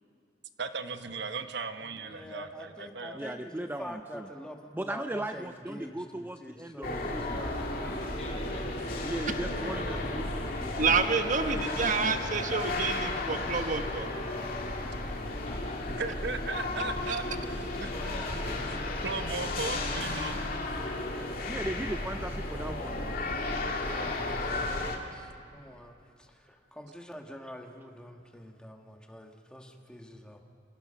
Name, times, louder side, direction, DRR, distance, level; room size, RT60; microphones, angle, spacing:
voice 1, 0.6-3.2 16.0-17.2 17.6-18.1 19.0-20.4 23.9-25.3, right 4 dB, 65° right, 8 dB, 1.1 m, -37 dB
voice 2, 1.9-8.2 23.8-30.4, equal, 5° left, 3 dB, 1.6 m, -46 dB
voice 3, 3.1-4.3 4.7-7.4 9.0-10.9 11.5-11.8 21.5-23.2, right 1 dB, 10° right, 7 dB, 0.4 m, -38 dB
sound 1, 6.8-25.0, left 2 dB, 55° left, 2.4 m, -34 dB
voice 4, 8.1-10.5 15.5-15.8 17.8-18.7, left 1 dB, 35° left, -3 dB, 5.8 m, -46 dB
voice 5, 10.8-14.1 17.1-17.2, right 5 dB, 45° right, 7 dB, 1.2 m, -28 dB
27.0 x 16.5 x 5.7 m, 2.6 s
head